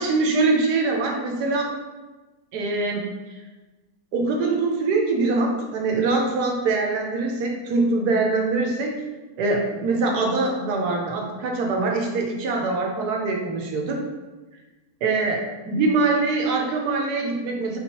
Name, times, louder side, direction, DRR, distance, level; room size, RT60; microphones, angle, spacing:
voice 1, 0.0-1.7 2.5-3.1 4.1-9.0 9.4-14.0 15.0-17.8, right 3 dB, 85° right, 1 dB, 1.2 m, -23 dB
3.9 x 2.9 x 3.0 m, 1.2 s
omnidirectional pair, 1.6 m